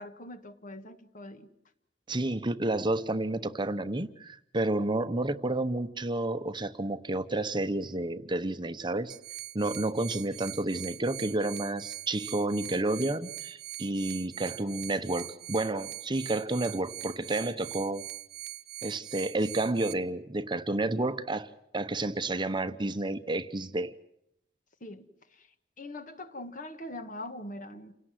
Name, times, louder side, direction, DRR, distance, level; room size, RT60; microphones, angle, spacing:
voice 1, 0.0-1.5 24.8-25.5 25.8-27.9, left 1 dB, 45° left, 1.7 m, -42 dB
voice 2, 2.1-9.2 9.5-18.1 18.8-23.9, right 2 dB, 25° right, 0.9 m, -30 dB
sound 1, 9.1-19.9, right 14 dB, 65° right, 1.1 m, -42 dB
29.0 x 18.0 x 7.6 m
head